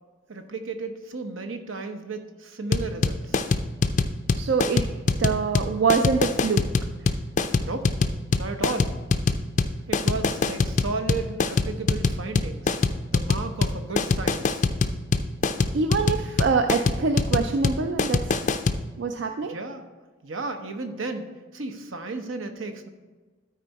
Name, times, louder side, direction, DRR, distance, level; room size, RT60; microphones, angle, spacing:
voice 1, 0.3-3.4 7.6-7.9 8.4-8.9 9.9-12.8 13.1-14.6 19.4-19.8 20.2-21.3 21.5-22.9, right 3 dB, 75° right, 6 dB, 0.8 m, -33 dB
sound 1, 2.7-18.8, left 4 dB, 35° left, 0.4 m, -23 dB
voice 2, 4.3-4.9 5.2-6.7 15.7-18.2 19.0-19.6, right 4 dB, 60° right, 6 dB, 0.4 m, -24 dB
12.5 x 4.5 x 4.1 m, 1.3 s
head